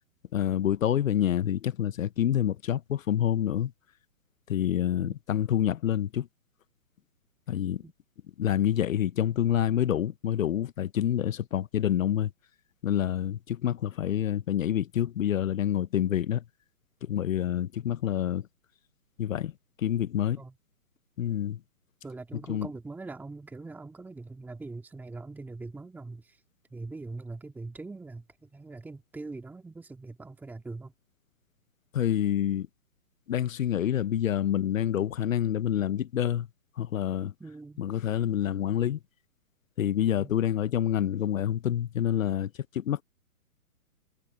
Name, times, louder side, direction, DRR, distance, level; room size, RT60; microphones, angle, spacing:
voice 1, 0.3-3.7 4.5-6.3 7.5-7.8 8.4-12.3 12.8-16.4 17.0-18.5 19.2-19.5 19.8-20.4 21.2-21.6 22.5-22.7 31.9-32.7 33.3-36.5 36.8-37.3 37.8-39.0 39.8-43.0, left 10 dB, 60° left, 0.9 m, -27 dB
voice 2, 22.0-26.4 26.7-30.9 37.4-37.8 40.2-40.3, right 3 dB, 5° right, 2.3 m, -42 dB
hypercardioid pair, 145°, 45 cm